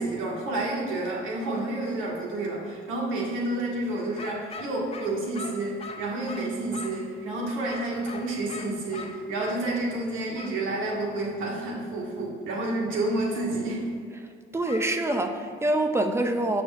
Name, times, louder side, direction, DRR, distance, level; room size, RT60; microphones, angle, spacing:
voice 1, 0.0-13.8, right 2 dB, 70° right, -3 dB, 2.0 m, -30 dB
dog barking, 4.2-7.1 7.7-9.6 10.3-10.6 14.7-15.3, left 4 dB, 30° left, 0.7 m, -41 dB
voice 2, 14.5-16.6, right 1 dB, 10° right, 6 dB, 0.6 m, -25 dB
6.4 x 4.8 x 6.4 m, 2.2 s
cardioid pair, 115°, 21 cm